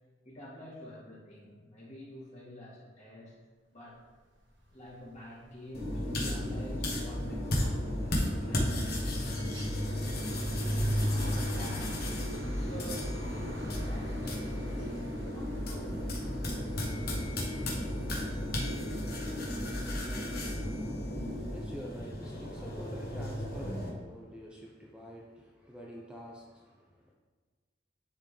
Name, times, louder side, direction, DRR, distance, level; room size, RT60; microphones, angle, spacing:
voice 1, 0.2-3.3 3.7-4.0 4.7-10.1 10.6-11.9 12.4-16.1 21.1-21.3, equal, 40° left, -6 dB, 2.1 m, -48 dB
sound 1, 4.9-5.2 5.5-18.6, equal, 80° right, 1.5 m, -39 dB
sound 2, 5.7-23.9, left 1 dB, 60° left, 1.3 m, -34 dB
voice 2, 21.5-27.1, equal, 5° right, -3 dB, 0.6 m, -47 dB
10.5 x 3.8 x 3.3 m, 1.4 s
head